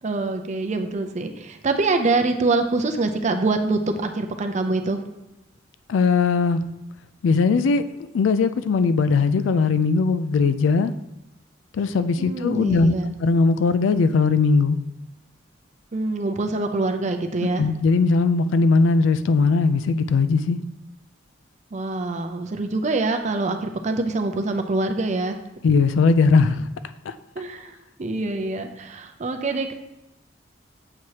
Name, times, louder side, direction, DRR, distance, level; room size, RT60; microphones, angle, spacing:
voice 1, 0.0-5.0 12.2-13.1 15.9-17.6 21.7-25.4 27.4-27.7 28.0-29.7, right 3 dB, 40° right, 0.5 m, -25 dB
voice 2, 5.9-6.6 7.2-7.8 8.1-10.9 11.7-14.8 17.6-20.6 25.6-26.7 27.1-27.2, left 4 dB, 85° left, 0.4 m, -19 dB
7.6 x 4.7 x 2.9 m
head